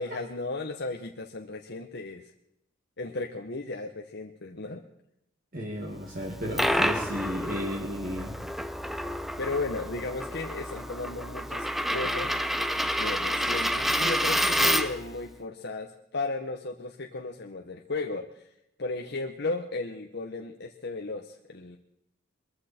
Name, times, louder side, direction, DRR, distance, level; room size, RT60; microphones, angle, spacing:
voice 1, 0.0-2.2 3.0-4.8 9.4-12.3 13.0-18.5 18.8-21.8, left 3 dB, 55° left, 3 dB, 1.1 m, -35 dB
voice 2, 5.5-8.4, equal, 45° right, -1 dB, 2.4 m, -33 dB
Coin (dropping), 6.2-15.1, equal, ahead, 0.7 m, -29 dB
22.0 x 14.5 x 4.4 m, 0.82 s
head